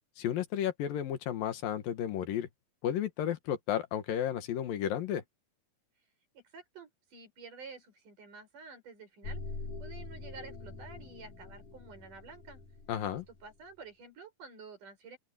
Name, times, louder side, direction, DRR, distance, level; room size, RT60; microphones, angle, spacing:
voice 1, 0.2-2.5 2.8-5.2 12.9-13.3, left 10 dB, 85° left, 3.3 m, -33 dB
voice 2, 6.3-9.4 9.8-12.6 13.3-15.2, right 4 dB, 65° right, 7.7 m, -50 dB
sound 1, 9.2-13.5, left 3 dB, 65° left, 7.1 m, -44 dB
open air
omnidirectional pair, 4.0 m